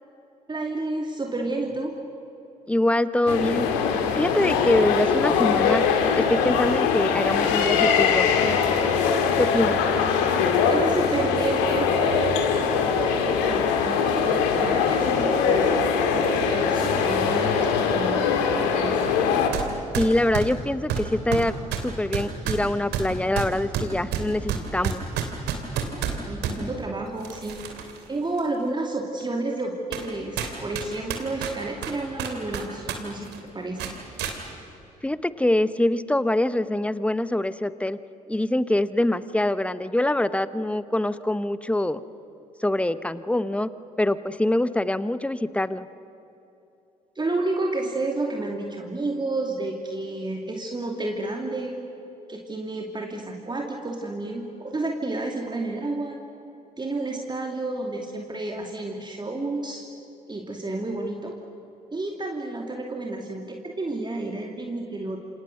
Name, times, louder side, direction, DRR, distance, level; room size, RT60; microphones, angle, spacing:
voice 1, 0.5-2.0 10.4-14.3 14.6-19.1 26.3-34.0 47.1-51.8 52.3-56.2 56.8-59.8 60.3-61.4 61.9-65.2, right 2 dB, 25° right, 1 dB, 2.6 m, -31 dB
voice 2, 2.7-3.7 4.1-5.9 6.1-8.3 9.4-9.8 19.9-21.5 21.8-25.0 35.0-38.0 38.3-42.0 42.6-43.7 44.0-45.8, left 1 dB, 5° left, 15 dB, 1.1 m, -24 dB
sound 1, 3.3-19.5, left 6 dB, 70° left, 2.3 m, -22 dB
sound 2, 19.5-19.7 19.9-26.6 27.2-28.0 28.4-28.5 29.2-29.3 29.9-30.1 30.4-33.0 33.2-33.4 33.8-34.4, right 7 dB, 60° right, 3.0 m, -29 dB
28.0 x 27.0 x 6.7 m, 2.9 s
figure-of-eight pair, 45°, 19 cm